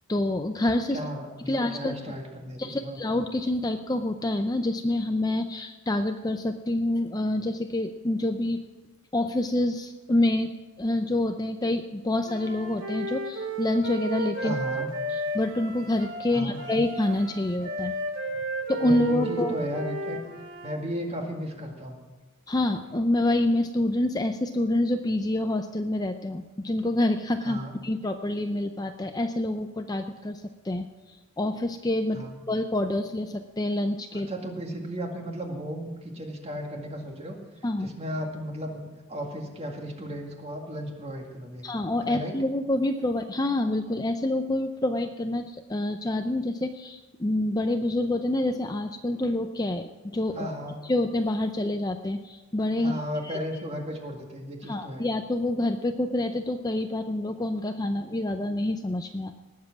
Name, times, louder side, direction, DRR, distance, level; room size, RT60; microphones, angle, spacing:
voice 1, 0.1-1.0 1.5-2.0 2.6-8.6 9.1-14.6 15.1-17.9 18.7-19.5 22.5-30.9 31.4-34.3 37.6-37.9 41.6-50.5 50.9-53.0 53.2-53.4 54.7-59.3, left 1 dB, 20° left, 7 dB, 0.5 m, -27 dB
voice 2, 0.9-3.0 14.4-14.9 16.3-16.6 18.8-22.0 27.4-27.7 32.1-32.4 34.1-37.4 37.8-38.8 39.1-41.6 42.0-42.4 50.3-50.8 52.8-55.1, equal, 30° right, 2 dB, 2.1 m, -35 dB
Wind instrument woodwind instrument, 12.2-20.8, right 1 dB, 60° right, 2.6 m, -33 dB
19.0 x 7.5 x 6.0 m, 1.2 s
head